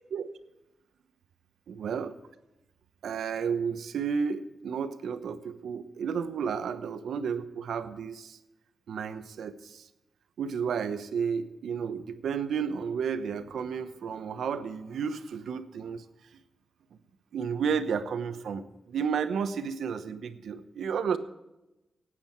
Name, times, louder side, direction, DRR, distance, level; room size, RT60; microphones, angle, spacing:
voice 1, 1.7-2.2 3.0-8.4 8.9-9.9 10.4-16.0 17.3-21.2, right 6 dB, 80° right, 10 dB, 0.9 m, -32 dB
18.5 x 9.1 x 4.6 m, 0.98 s
wide cardioid pair, 140°, 0 cm